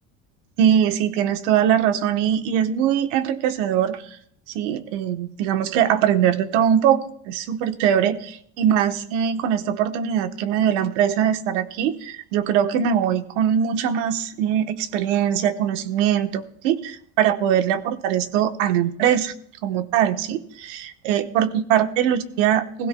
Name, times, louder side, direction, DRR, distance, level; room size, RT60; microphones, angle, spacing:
voice 1, 0.6-4.0 4.5-19.3 19.6-22.9, right 9 dB, 85° right, 9 dB, 1.1 m, -22 dB
20.5 x 16.0 x 2.2 m, 0.64 s
cardioid pair, 155°, 36 cm